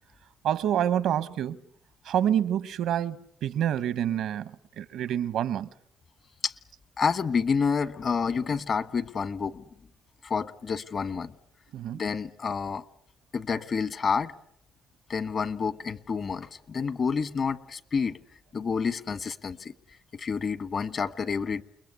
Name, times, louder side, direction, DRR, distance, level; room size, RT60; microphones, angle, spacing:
voice 1, 0.4-1.6 2.0-5.7 11.7-12.0, right 10 dB, 80° right, 1.0 m, -27 dB
voice 2, 7.0-9.6 10.2-11.3 11.9-12.8 13.3-14.3 15.1-18.2 18.5-19.7 20.1-21.6, left 5 dB, 50° left, 1.4 m, -29 dB
29.5 x 21.5 x 8.2 m
cardioid pair, 90°, 0 cm